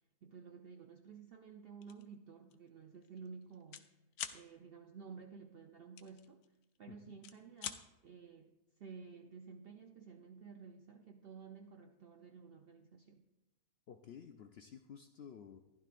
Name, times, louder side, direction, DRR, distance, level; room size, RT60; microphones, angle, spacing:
voice 1, 0.2-3.9 4.3-6.4 6.8-8.5 8.8-13.3, right 5 dB, 65° right, 5 dB, 0.5 m, -53 dB
sound 1, 1.8-2.1 2.5-2.7 2.9-3.9 4.1-4.4 6.0-6.8 7.1-7.8, left 10 dB, 90° left, 1.1 m, -45 dB
voice 2, 13.9-15.6, left 8 dB, 65° left, 5 dB, 0.6 m, -53 dB
15.0 x 11.0 x 2.5 m, 1.0 s
omnidirectional pair, 1.5 m